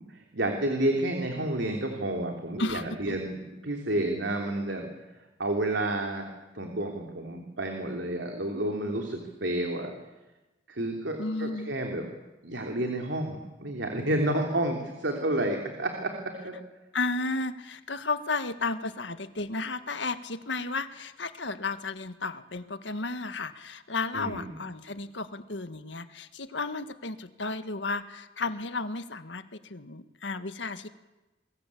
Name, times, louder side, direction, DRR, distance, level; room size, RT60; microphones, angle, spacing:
voice 1, 0.0-4.9 5.4-6.3 6.5-9.9 10.7-12.1 12.4-16.1 16.4-16.5 24.1-24.5, right 1 dB, 75° right, 3 dB, 3.2 m, -30 dB
voice 2, 11.2-11.7 16.9-30.9, left 3 dB, 80° left, 10 dB, 1.7 m, -33 dB
28.5 x 21.5 x 8.6 m, 1.1 s
head